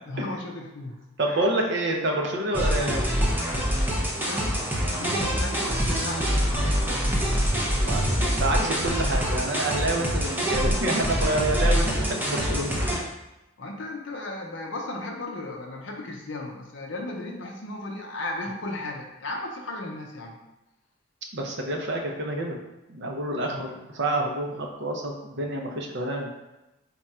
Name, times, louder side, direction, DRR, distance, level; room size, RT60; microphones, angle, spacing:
voice 1, 0.1-1.0 1.2-1.5 4.2-6.9 13.6-20.4 23.5-23.8 24.5-24.6, left 2 dB, 60° left, 1 dB, 0.6 m, -36 dB
voice 2, 1.2-3.1 7.7-12.8 21.3-22.6 22.9-26.3, right 1 dB, 55° right, 1 dB, 0.6 m, -28 dB
sound 1, 2.5-13.0, equal, 10° right, 0.5 m, -25 dB
3.6 x 2.3 x 4.2 m, 0.97 s
head